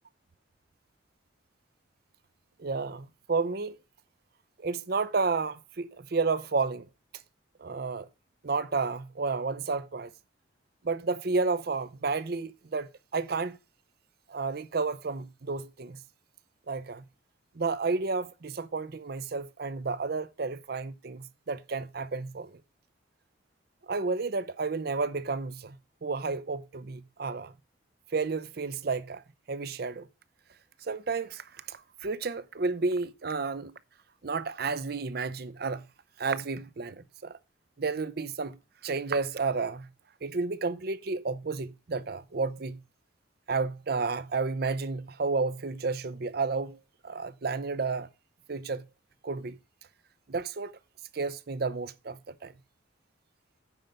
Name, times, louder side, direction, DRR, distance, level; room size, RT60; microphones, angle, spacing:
voice 1, 2.6-3.8 4.6-6.9 7.6-8.1 8.4-10.1 10.8-13.6 14.3-16.0 16.7-17.0 17.6-22.5 23.9-25.8 26.0-27.5 28.1-29.2 29.5-30.1 30.9-33.8 34.2-35.8 36.2-37.4 37.8-39.9 40.2-42.8 43.5-46.8 47.0-48.1 48.5-48.8 49.2-49.6 50.3-50.7 51.1-52.5, right 4 dB, 55° right, 0.6 m, -31 dB
9.3 x 5.3 x 5.6 m
head